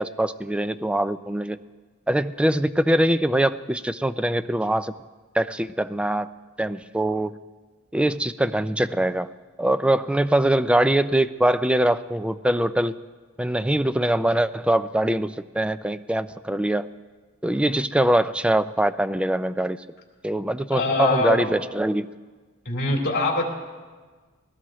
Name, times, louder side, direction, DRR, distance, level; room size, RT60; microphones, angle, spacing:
voice 1, 0.0-1.6 2.1-4.9 5.3-6.3 6.6-7.4 7.9-9.3 9.6-12.9 13.4-16.9 17.4-19.8 20.2-22.1, right 1 dB, 5° right, 13 dB, 0.4 m, -23 dB
voice 2, 20.7-21.5 22.7-23.4, left 3 dB, 50° left, -2 dB, 3.5 m, -23 dB
21.0 x 17.5 x 3.1 m, 1.4 s
head